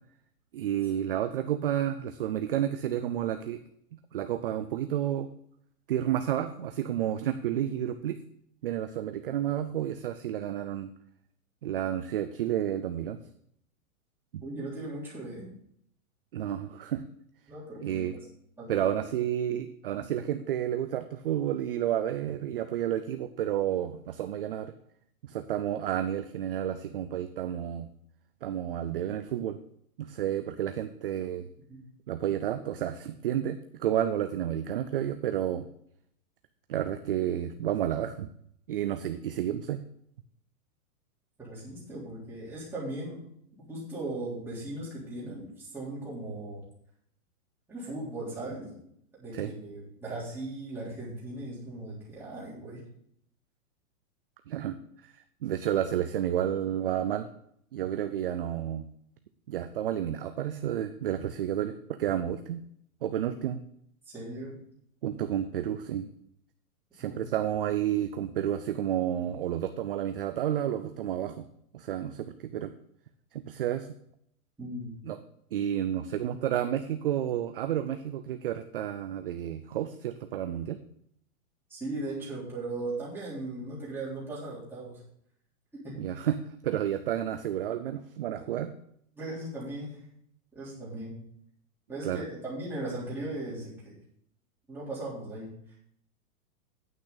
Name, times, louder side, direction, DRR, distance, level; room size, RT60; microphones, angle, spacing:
voice 1, 0.5-3.6 3.9-5.3 5.9-8.2 8.6-10.9 11.6-13.2 14.3-14.4 16.3-17.0 17.8-18.2 18.7-24.7 25.3-27.9 28.4-29.6 30.0-31.5 32.1-35.7 36.7-38.3 38.7-39.8 49.3-49.5 54.5-55.1 55.4-57.3 57.7-58.9 59.5-62.6 63.0-63.6 65.0-66.1 66.9-71.5 71.7-72.7 73.3-73.9 75.0-75.2 75.5-80.8 86.0-88.7 92.0-92.2, right 11 dB, 40° right, 9 dB, 0.4 m, -31 dB
voice 2, 14.4-15.5 17.5-18.1 18.6-18.9 31.7-31.8 41.4-43.2 43.7-46.6 47.7-48.8 49.1-52.8 64.0-64.5 67.0-67.2 74.6-74.9 81.7-85.0 85.7-85.9 89.1-90.0 90.5-91.1 91.9-93.9 94.7-95.8, right 2 dB, 5° right, -8 dB, 3.4 m, -38 dB
9.3 x 8.5 x 4.0 m, 0.69 s
hypercardioid pair, 165°, 44 cm